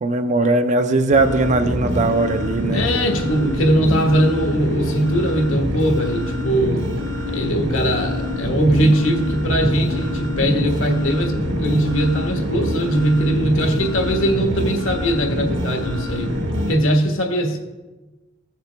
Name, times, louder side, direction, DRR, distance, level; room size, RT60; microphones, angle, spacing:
voice 1, 0.0-2.8, right 2 dB, 35° right, 8 dB, 0.5 m, -19 dB
sound 1, 1.1-16.7, left 1 dB, 60° right, 1.4 m, -25 dB
voice 2, 2.7-6.8 7.3-16.3 16.7-17.6, right 1 dB, 70° left, 3 dB, 1.4 m, -20 dB
15.0 x 6.7 x 3.4 m, 1.2 s
head